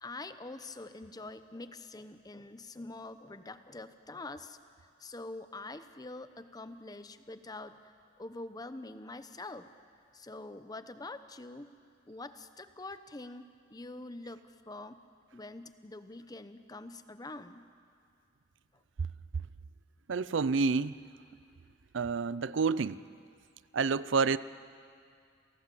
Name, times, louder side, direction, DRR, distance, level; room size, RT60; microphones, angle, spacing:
voice 1, 0.0-4.6 5.0-7.9 8.2-9.7 10.1-11.7 12.1-15.0 15.3-17.7, left 2 dB, 20° left, 11 dB, 0.8 m, -45 dB
voice 2, 20.1-21.0 21.9-23.0 23.7-24.4, right 4 dB, 70° right, 17 dB, 0.5 m, -28 dB
29.5 x 17.5 x 7.7 m, 2.3 s
head